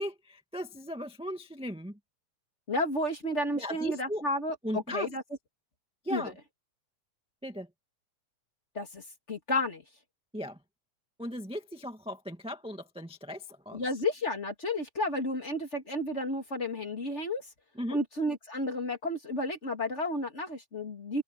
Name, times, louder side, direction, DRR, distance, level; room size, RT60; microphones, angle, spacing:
voice 1, 0.0-2.0 3.5-4.2 4.6-5.1 6.0-6.3 7.4-7.7 10.3-10.6 11.2-13.8 17.8-18.0, equal, 5° right, 1.2 m, -37 dB
voice 2, 2.7-5.2 6.1-6.3 8.7-9.8 13.7-17.5 17.9-21.2, left 1 dB, 25° left, 2.6 m, -32 dB
open air
omnidirectional pair, 3.3 m